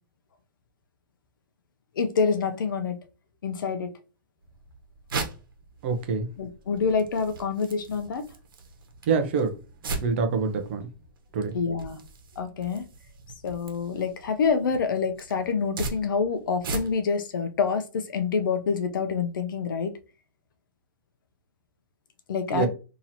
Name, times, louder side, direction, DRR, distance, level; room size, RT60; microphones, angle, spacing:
voice 1, 2.0-3.0 3.4-3.9 6.4-8.3 11.5-12.0 12.4-12.8 13.4-19.9 22.3-22.7, left 5 dB, 65° left, 8 dB, 0.6 m, -27 dB
sound 1, 4.4-17.2, right 3 dB, 70° right, 1.1 m, -39 dB
voice 2, 5.8-6.3 9.1-9.6 10.0-10.8 11.3-11.5 22.5-22.7, right 5 dB, 30° right, 7 dB, 0.5 m, -25 dB
2.9 x 2.9 x 4.0 m, 0.34 s
hypercardioid pair, 175°, 12 cm